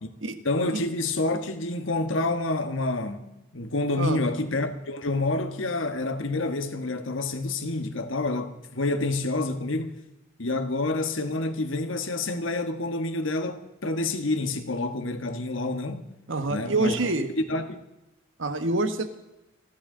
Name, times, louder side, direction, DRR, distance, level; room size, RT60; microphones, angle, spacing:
voice 1, 0.4-3.3 3.5-10.0 10.4-16.1 16.5-16.9 17.5-17.8, left 2 dB, 75° left, 1.3 m, -28 dB
voice 2, 16.3-17.3 18.4-19.2, right 2 dB, 75° right, 1.3 m, -26 dB
27.5 x 11.5 x 3.8 m
head